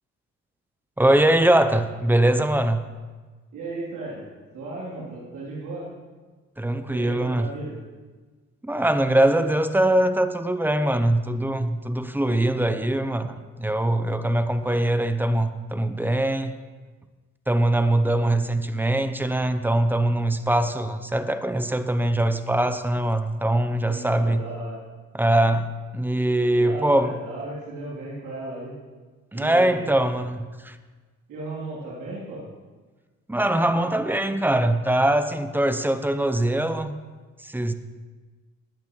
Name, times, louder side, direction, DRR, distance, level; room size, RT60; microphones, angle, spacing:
voice 1, 1.0-2.8 6.6-7.5 8.6-16.5 17.5-24.4 25.1-27.2 29.3-30.8 33.3-36.9 37.4-37.7, right 1 dB, 5° right, 9 dB, 0.8 m, -22 dB
voice 2, 3.5-4.3 4.5-5.9 6.9-7.8 23.8-24.8 26.6-28.7 29.3-30.0 31.3-32.4, right 2 dB, 85° right, -7 dB, 3.5 m, -35 dB
19.5 x 8.2 x 3.2 m, 1.3 s
cardioid pair, 90°, 30 cm